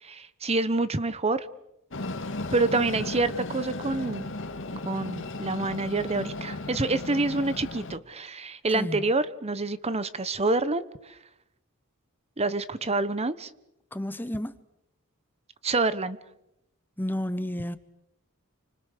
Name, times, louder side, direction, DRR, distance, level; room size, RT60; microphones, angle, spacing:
voice 1, 0.0-1.5 2.5-4.2 4.8-11.2 12.4-13.5 15.6-16.2, right 3 dB, 30° right, 1.0 m, -27 dB
Train, 1.9-8.0, left 2 dB, 60° left, 2.0 m, -35 dB
voice 2, 13.9-14.6 17.0-17.8, left 1 dB, 10° left, 1.0 m, -31 dB
29.0 x 25.0 x 6.7 m
head